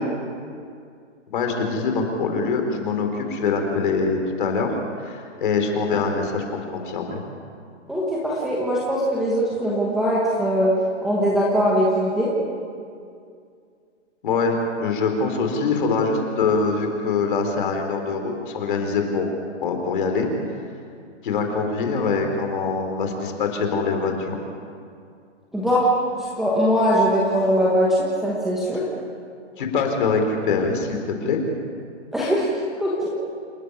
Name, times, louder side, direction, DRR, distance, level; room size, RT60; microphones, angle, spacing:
voice 1, 1.3-7.2 14.2-19.3 19.6-20.3 21.2-24.4 29.6-31.4, left 4 dB, 45° left, 4 dB, 3.8 m, -24 dB
voice 2, 7.9-10.7 11.0-12.3 25.5-25.9 26.2-28.8 32.1-33.1, equal, ahead, -8 dB, 1.3 m, -21 dB
28.0 x 11.0 x 9.7 m, 2.3 s
hypercardioid pair, 170°, 36 cm